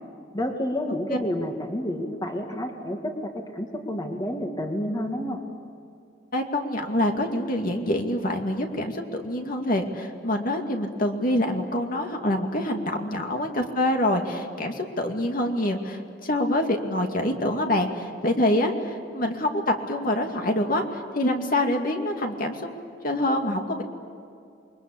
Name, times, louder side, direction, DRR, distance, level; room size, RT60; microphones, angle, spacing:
voice 1, 0.3-5.4, left 1 dB, 20° left, 3 dB, 2.0 m, -29 dB
voice 2, 6.3-22.7 23.0-23.8, left 1 dB, 50° left, 3 dB, 2.4 m, -26 dB
28.0 x 22.5 x 8.5 m, 2.4 s
head